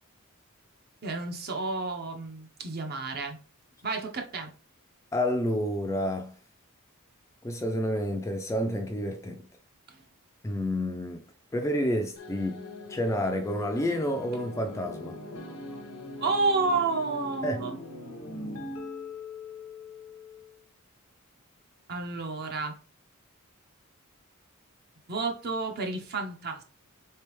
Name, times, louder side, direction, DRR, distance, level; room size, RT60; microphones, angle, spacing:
voice 1, 1.0-3.4 3.8-4.5 16.2-17.8 21.9-22.8 25.1-26.6, right 3 dB, 45° right, 0.7 m, -30 dB
voice 2, 5.1-6.3 7.4-9.4 10.4-11.2 11.5-15.2 17.4-17.6, left 1 dB, 15° left, 0.3 m, -29 dB
sound 1, 12.2-20.6, left 2 dB, 85° left, 1.1 m, -41 dB
3.4 x 3.3 x 3.1 m
head